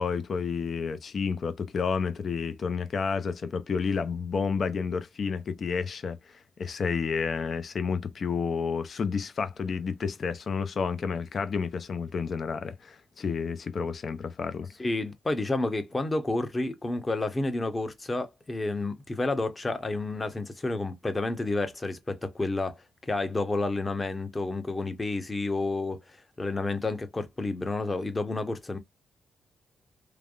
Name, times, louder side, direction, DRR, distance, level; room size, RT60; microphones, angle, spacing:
voice 1, 0.0-14.7, left 5 dB, 55° left, 0.6 m, -30 dB
voice 2, 14.8-26.0 26.4-28.8, left 2 dB, 25° left, 0.9 m, -30 dB
3.3 x 2.2 x 2.4 m
supercardioid pair, 55°, 0 cm